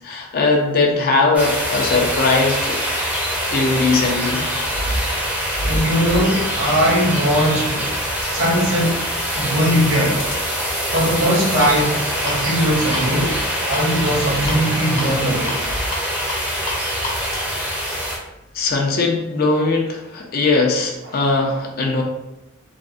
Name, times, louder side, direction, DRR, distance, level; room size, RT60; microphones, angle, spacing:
voice 1, 0.0-2.8 3.5-4.4 18.5-22.0, left 3 dB, 45° left, 1 dB, 0.4 m, -19 dB
sound 1, 1.3-18.2, equal, 5° right, 0.5 m, -24 dB
sound 2, 4.5-18.7, equal, 70° left, 0.9 m, -32 dB
voice 2, 5.6-8.0 8.2-9.0 9.3-10.3 10.9-13.4 13.7-15.6, equal, 60° right, -3 dB, 0.8 m, -20 dB
3.5 x 2.1 x 2.5 m, 0.92 s
head